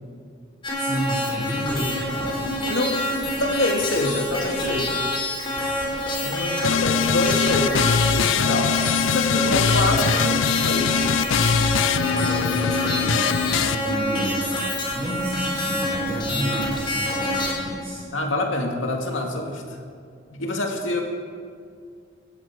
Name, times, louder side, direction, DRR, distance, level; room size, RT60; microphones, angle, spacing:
sound 1, 0.6-17.6, left 1 dB, 25° left, 4.1 m, -27 dB
voice 1, 0.7-2.3 9.9-10.6 12.0-14.6 14.9-18.0, equal, 20° right, -9 dB, 4.7 m, -31 dB
voice 2, 2.6-3.1 3.4-5.1 6.2-8.7 9.1-10.1 10.5-10.9 16.3-16.7 18.1-19.6 20.3-21.0, left 2 dB, 90° left, 2 dB, 2.1 m, -26 dB
sound 2, 6.6-13.8, left 6 dB, 75° left, 0.5 m, -22 dB
17.0 x 14.5 x 4.8 m, 2.2 s
head